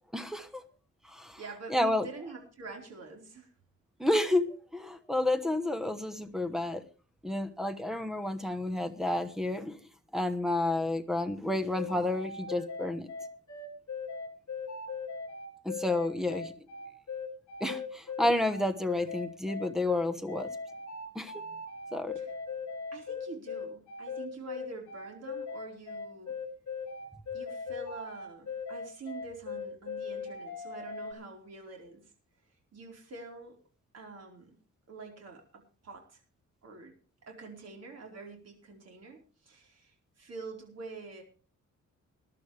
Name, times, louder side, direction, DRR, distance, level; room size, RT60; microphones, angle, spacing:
voice 1, 0.1-0.6 1.1-1.4 1.7-2.1 4.0-4.4 4.7-6.8 7.2-9.8 10.1-13.1 15.6-16.5 17.6-20.5 21.1-21.3 21.9-22.1, left 2 dB, ahead, 1.0 m, -30 dB
voice 2, 1.4-3.5 16.2-16.4 22.1-22.3 22.9-26.3 27.3-32.0 32.7-33.6 33.9-34.6 34.9-36.2 36.6-36.9 37.3-41.2, right 3 dB, 55° right, 4.5 m, -46 dB
sound 1, 11.7-31.1, left 5 dB, 70° left, 3.3 m, -39 dB
20.5 x 11.5 x 3.3 m
wide cardioid pair, 165°, 30 cm